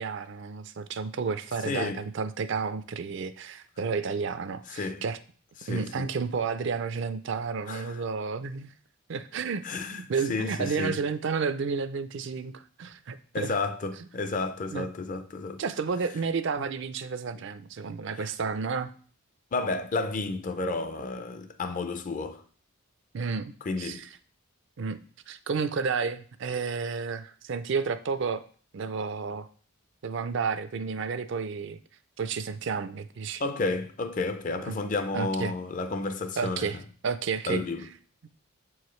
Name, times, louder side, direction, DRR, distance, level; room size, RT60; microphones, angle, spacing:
voice 1, 0.0-5.2 5.7-8.7 9.1-9.6 9.9-13.5 14.7-14.9 15.6-18.9 23.1-23.5 23.8-24.1 24.8-25.0 25.3-28.4 28.7-29.5 30.0-31.8 32.2-33.4 34.7-34.8 35.1-35.5 36.4-37.6, right 5 dB, 60° right, 0.4 m, -31 dB
voice 2, 1.6-2.0 4.7-5.0 5.6-6.1 7.7-8.0 9.6-10.0 10.3-11.0 13.3-15.6 16.6-16.7 18.2-18.3 19.5-22.4 23.7-24.1 33.4-36.7 37.5-37.9, left 3 dB, 40° left, 0.5 m, -31 dB
7.4 x 4.7 x 3.1 m
head